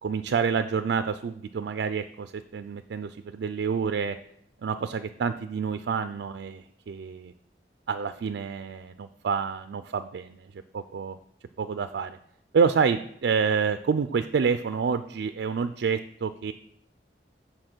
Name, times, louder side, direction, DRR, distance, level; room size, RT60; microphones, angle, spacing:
voice 1, 0.0-4.2 4.6-7.3 7.9-11.2 11.6-12.2 12.5-16.5, right 6 dB, 80° right, 10 dB, 0.4 m, -28 dB
7.7 x 4.2 x 6.1 m, 0.75 s
head